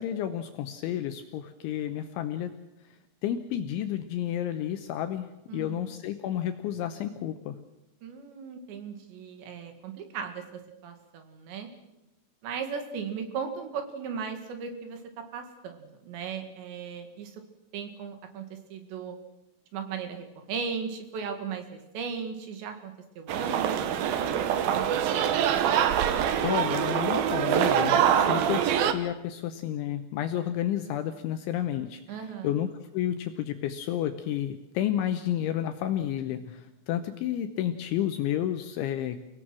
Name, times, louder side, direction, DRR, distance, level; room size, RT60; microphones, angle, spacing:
voice 1, 0.0-2.5 3.2-7.6 26.4-32.0 32.4-32.7 32.9-39.2, left 11 dB, 75° left, 8 dB, 3.0 m, -31 dB
voice 2, 5.5-5.8 8.0-11.7 12.4-15.0 15.3-17.4 17.7-19.2 19.7-25.4 32.1-32.6, right 6 dB, 65° right, 6 dB, 3.9 m, -37 dB
sound 1, 23.3-28.9, right 9 dB, 80° right, 2.1 m, -24 dB
29.5 x 17.5 x 6.2 m, 0.93 s
omnidirectional pair, 5.9 m